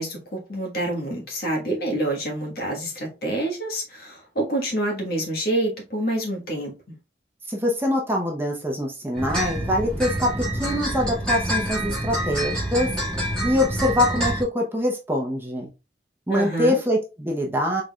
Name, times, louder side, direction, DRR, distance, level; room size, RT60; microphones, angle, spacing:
voice 1, 0.0-6.7 16.3-16.8, right 1 dB, 55° left, 1.5 m, -27 dB
voice 2, 7.5-12.9 13.4-15.7 16.3-17.8, left 1 dB, 10° right, 0.8 m, -24 dB
sound 1, 9.1-14.4, equal, 5° left, 2.0 m, -27 dB
4.6 x 3.8 x 2.3 m
head